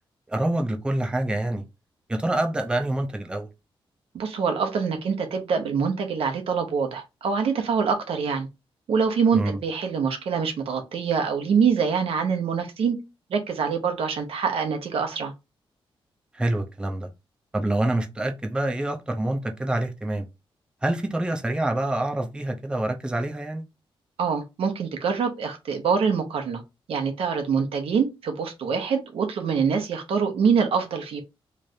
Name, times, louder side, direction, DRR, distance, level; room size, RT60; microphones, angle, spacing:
voice 1, 0.3-1.6 2.1-3.5 9.3-9.6 16.3-17.1 17.5-20.3 20.8-23.6, right 1 dB, 10° right, 0.5 m, -26 dB
voice 2, 4.1-8.5 8.9-13.0 13.3-15.3 24.2-26.6 26.9-31.2, right 6 dB, 80° right, 1.0 m, -25 dB
3.2 x 2.5 x 4.2 m
wide cardioid pair, 130°, 10 cm